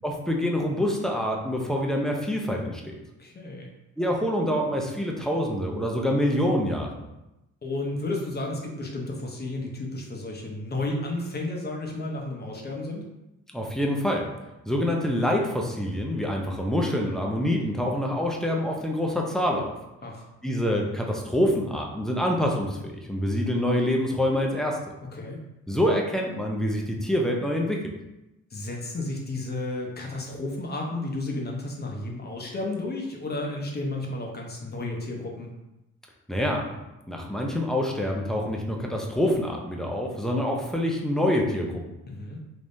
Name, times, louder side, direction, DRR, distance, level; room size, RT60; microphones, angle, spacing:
voice 1, 0.0-2.9 4.0-6.9 13.5-14.3 14.7-19.7 20.4-24.8 25.7-27.8 36.3-36.6 37.1-41.7, equal, ahead, 0 dB, 0.6 m, -26 dB
voice 2, 3.2-3.7 7.6-13.0 20.0-20.2 25.1-25.4 28.5-35.5 42.1-42.4, left 2 dB, 35° left, 0 dB, 0.8 m, -32 dB
3.5 x 3.0 x 2.6 m, 0.95 s
cardioid pair, 90°, 30 cm